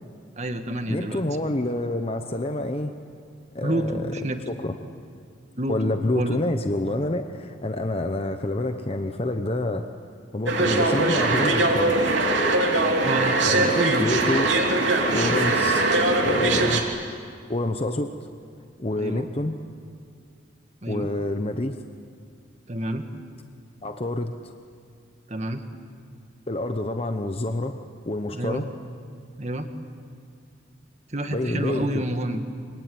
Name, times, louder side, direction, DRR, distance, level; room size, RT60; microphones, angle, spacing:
voice 1, 0.4-1.2 3.6-4.4 5.6-5.8 6.1-6.4 13.0-14.1 19.0-19.3 20.8-21.1 22.7-23.1 25.3-25.6 28.3-28.7 29.4-29.7 31.1-32.4, right 1 dB, 35° right, 6 dB, 1.8 m, -28 dB
voice 2, 0.9-3.0 3.5-4.1 4.5-4.7 5.7-9.8 10.3-12.0 13.4-13.7 14.0-14.5 15.1-15.9 16.2-16.8 17.5-18.3 18.8-19.5 20.9-21.8 23.8-24.5 26.5-27.8 28.0-28.7 31.3-31.9, left 1 dB, 30° left, 7 dB, 0.9 m, -27 dB
sound 1, 10.5-16.8, right 2 dB, 75° right, 3.0 m, -21 dB
25.5 x 24.0 x 9.5 m, 2.2 s
head